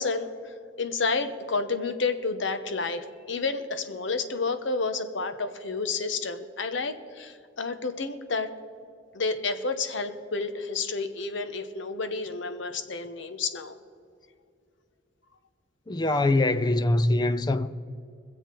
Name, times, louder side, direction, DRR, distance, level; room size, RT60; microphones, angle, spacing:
voice 1, 0.0-8.5 9.1-13.8, left 4 dB, 75° left, 0.9 m, -30 dB
voice 2, 15.9-17.7, left 2 dB, 20° left, 0.4 m, -23 dB
23.0 x 7.7 x 4.5 m
head